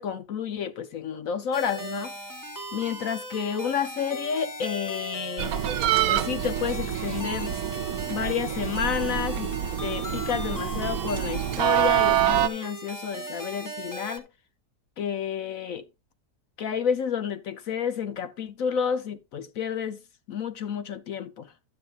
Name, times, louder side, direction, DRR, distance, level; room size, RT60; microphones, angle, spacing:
voice 1, 0.0-2.1 2.7-5.6 6.1-7.5 8.1-9.5 9.8-14.3 15.0-15.8 16.6-20.0 20.3-21.5, left 7 dB, 65° left, 1.0 m, -30 dB
sound 1, 1.5-14.2, equal, 15° left, 1.0 m, -38 dB
sound 2, 5.4-12.5, right 11 dB, 70° right, 1.0 m, -26 dB
11.5 x 7.8 x 2.4 m
omnidirectional pair, 1.7 m